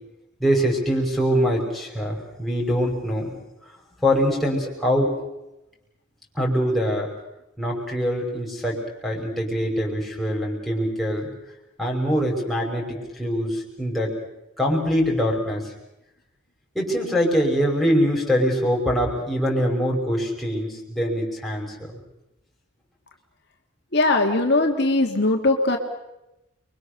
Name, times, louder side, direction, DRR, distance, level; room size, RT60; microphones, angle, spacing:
voice 1, 0.4-3.3 4.0-5.1 6.4-7.1 7.6-8.8 9.0-11.3 11.8-14.1 14.6-15.7 16.7-21.7, equal, ahead, -3 dB, 5.8 m, -23 dB
voice 2, 23.9-25.8, left 2 dB, 55° left, 3 dB, 2.0 m, -20 dB
29.5 x 23.0 x 6.7 m, 0.93 s
head